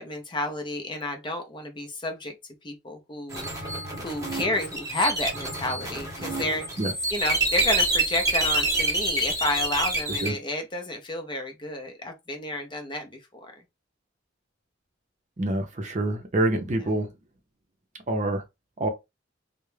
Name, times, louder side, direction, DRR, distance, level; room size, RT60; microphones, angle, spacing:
voice 1, 0.0-2.3 2.6-3.7 4.0-6.7 7.1-13.5 16.8-16.9, left 2 dB, 25° left, 0.6 m, -31 dB
sound 1, 3.3-10.3, right 2 dB, 20° right, 0.8 m, -27 dB
voice 2, 15.4-17.1 18.1-18.4 18.8-18.9, right 1 dB, 40° right, 0.6 m, -26 dB
2.4 x 2.1 x 3.1 m
head